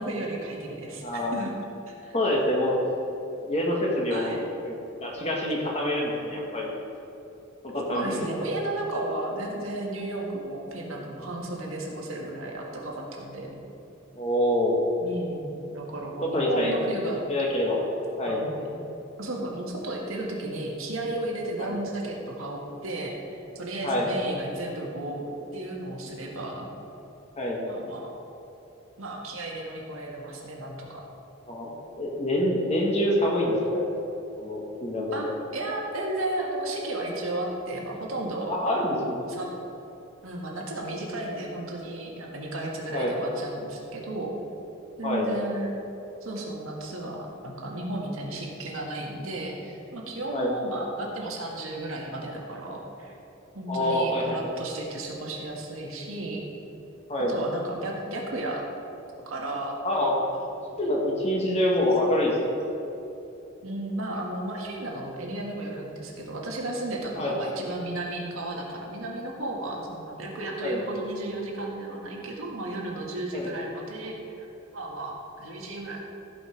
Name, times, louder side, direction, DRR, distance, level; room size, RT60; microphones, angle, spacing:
voice 1, 0.0-1.5 1.9-2.2 4.1-4.4 7.9-13.5 15.0-17.2 18.3-18.7 19.2-26.7 27.6-28.1 29.0-31.0 35.1-35.3 35.5-38.8 39.2-39.5 40.2-44.3 45.0-45.7 46.2-53.2 53.5-56.4 57.3-58.6 59.3-59.7 60.3-60.5 63.6-74.5 74.7-76.0, right 1 dB, 75° right, -2 dB, 1.8 m, -34 dB
voice 2, 1.0-1.4 2.1-2.7 3.4-4.4 4.6-4.7 5.0-6.7 7.6-8.2 14.1-14.7 16.2-16.8 17.3-17.9 18.2-18.4 21.6-21.8 23.8-24.1 27.4-27.6 31.5-33.8 34.4-35.2 38.5-39.2 42.9-43.1 45.0-45.3 50.3-50.5 53.7-54.5 57.1-57.3 59.8-60.1 60.8-62.4 67.2-67.4 70.6-70.8 73.3-73.5, left 1 dB, 30° left, -2 dB, 1.5 m, -26 dB
15.0 x 5.3 x 5.1 m, 2.9 s
head